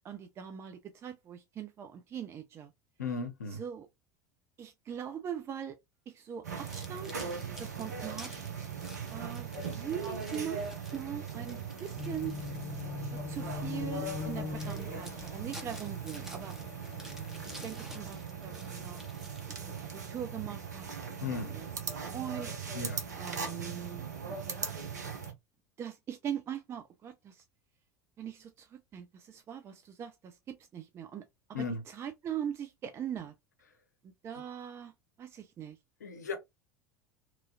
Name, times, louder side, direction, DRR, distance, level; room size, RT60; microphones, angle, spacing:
voice 1, 0.0-2.7 3.5-3.9 4.6-5.8 6.1-7.1 7.6-8.3 9.1-12.4 13.1-17.1 17.5-19.0 19.5-20.8 21.2-21.7 22.1-22.5 23.2-24.4 25.1-25.2 25.8-27.4 28.2-31.2 31.5-33.3 34.0-34.9 35.2-35.8, right 9 dB, 30° right, 0.4 m, -41 dB
voice 2, 3.0-3.6 21.2-21.6 22.7-23.0 31.5-31.8 36.0-36.4, left 4 dB, 75° left, 0.7 m, -35 dB
sound 1, 6.4-25.3, right 5 dB, 75° right, 0.7 m, -40 dB
sound 2, 6.5-12.9 13.5-13.6 14.2-14.3 14.6-20.1, equal, 5° right, 0.9 m, -51 dB
sound 3, 12.0-17.6, left 6 dB, 35° left, 0.4 m, -42 dB
3.0 x 2.3 x 2.6 m
figure-of-eight pair, 75°, 9 cm